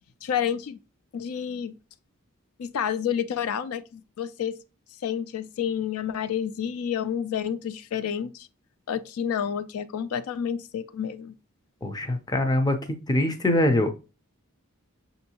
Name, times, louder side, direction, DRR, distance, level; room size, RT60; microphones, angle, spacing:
voice 1, 0.2-0.8 1.1-1.7 2.6-4.6 5.0-8.5 8.9-11.4, left 8 dB, 75° left, 0.4 m, -29 dB
voice 2, 11.8-12.8 13.1-13.9, left 1 dB, 20° left, 0.5 m, -23 dB
6.1 x 2.6 x 2.8 m
head